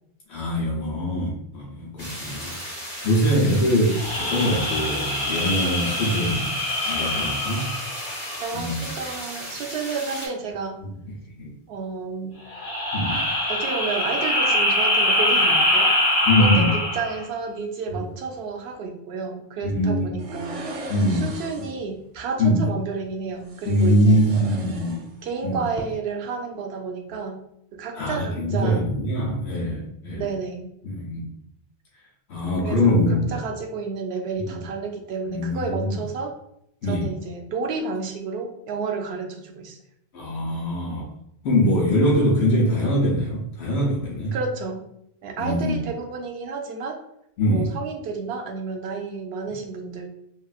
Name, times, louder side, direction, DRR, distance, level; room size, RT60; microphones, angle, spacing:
voice 1, 0.3-2.5 3.0-6.5 6.9-7.7 8.5-8.8 10.8-10.9 11.4-11.5 12.9-13.2 16.3-16.7 19.6-20.0 20.9-21.3 22.4-22.6 23.7-25.0 25.4-25.6 28.0-30.2 30.8-31.3 32.3-33.3 34.5-34.6 35.3-36.0 36.8-37.1 40.1-41.1 41.4-44.3 45.4-45.7 47.4-47.7, equal, 85° left, -3 dB, 1.0 m, -22 dB
sound 1, 2.0-10.3, equal, 15° left, 1.2 m, -36 dB
sound 2, 3.9-8.7 12.5-17.2, left 1 dB, 50° left, 1.0 m, -24 dB
voice 2, 8.4-10.8 11.7-12.4 13.5-20.6 21.1-24.2 25.2-27.4 27.7-28.8 30.1-30.7 32.6-36.3 36.8-39.8 44.3-44.9 45.2-47.0 47.5-50.1, right 4 dB, 75° right, 3 dB, 0.8 m, -31 dB
sound 3, 20.2-21.8 23.4-25.4 25.7-25.8, right 2 dB, 55° right, 0.4 m, -38 dB
3.0 x 2.5 x 2.3 m, 0.77 s
omnidirectional pair, 1.1 m